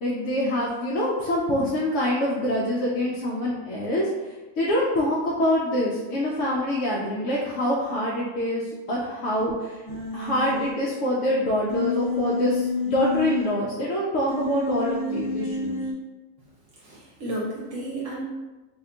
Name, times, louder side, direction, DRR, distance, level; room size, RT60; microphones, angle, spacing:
voice 1, 0.0-9.9 10.1-15.8, left 1 dB, 70° left, -6 dB, 0.9 m, -25 dB
Human voice, 9.9-10.7 11.7-13.5 14.3-15.9, left 3 dB, 40° left, 0.5 m, -29 dB
voice 2, 16.7-18.2, right 1 dB, 75° right, -4 dB, 1.0 m, -33 dB
2.7 x 2.2 x 3.8 m, 1.1 s
omnidirectional pair, 1.4 m